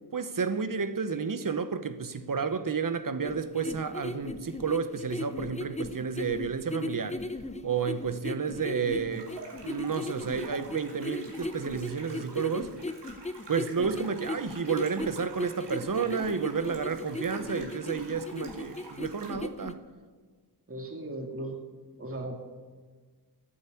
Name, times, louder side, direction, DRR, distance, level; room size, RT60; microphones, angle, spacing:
voice 1, 0.1-7.2 7.6-9.3 9.6-12.7 13.5-19.8, right 6 dB, 50° right, 1.0 m, -31 dB
sound 1, 3.2-19.7, left 2 dB, 15° left, 0.7 m, -37 dB
sound 2, 9.1-19.3, right 3 dB, 85° right, 3.2 m, -49 dB
voice 2, 20.7-21.6 22.0-22.5, right 1 dB, 35° right, 2.0 m, -37 dB
13.0 x 8.9 x 8.4 m
wide cardioid pair, 105°, 41 cm